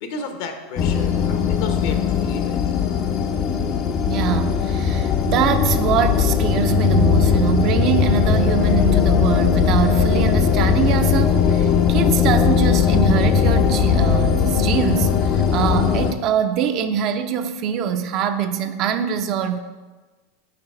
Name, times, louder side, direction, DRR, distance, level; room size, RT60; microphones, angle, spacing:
voice 1, 0.0-2.8, left 4 dB, 70° left, 0.9 m, -33 dB
sound 1, 0.8-16.1, left 7 dB, 45° left, 0.5 m, -19 dB
voice 2, 4.0-19.6, right 8 dB, 50° right, 0.5 m, -23 dB
5.8 x 4.1 x 5.4 m
hypercardioid pair, 110°, 0 cm